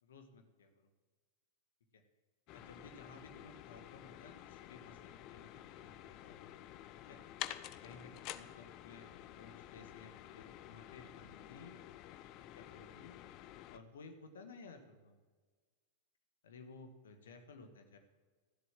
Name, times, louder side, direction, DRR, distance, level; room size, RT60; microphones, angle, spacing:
voice 1, 0.0-0.8 1.9-2.0 2.5-6.6 7.1-7.2 7.8-11.7 12.5-13.1 13.7-15.2 16.4-18.0, left 4 dB, 65° left, 7 dB, 1.6 m, -56 dB
sound 1, 2.5-13.8, left 13 dB, 40° left, 0.6 m, -50 dB
13.5 x 7.7 x 7.4 m, 1.4 s
figure-of-eight pair, 90°, 0 cm